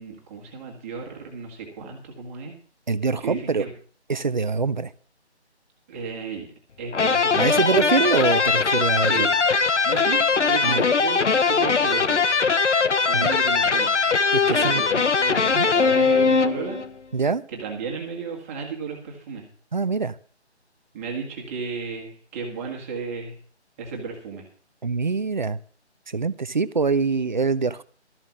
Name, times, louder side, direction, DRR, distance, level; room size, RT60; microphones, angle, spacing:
voice 1, 0.0-2.5 3.2-3.7 5.9-6.5 6.8-8.1 9.1-9.3 9.8-12.2 13.0-13.9 14.5-16.8 17.5-19.5 20.9-23.3 23.8-24.5, right 5 dB, 10° right, 1.9 m, -34 dB
voice 2, 2.9-3.7 4.1-4.9 7.3-9.3 10.6-10.9 13.1-13.3 14.3-14.8 15.5-15.7 17.1-17.4 19.7-20.2 24.8-25.6 26.1-27.8, right 4 dB, 45° right, 0.6 m, -24 dB
sound 1, 6.9-16.9, left 5 dB, 85° left, 1.1 m, -20 dB
13.5 x 7.4 x 7.3 m
figure-of-eight pair, 165°, 34 cm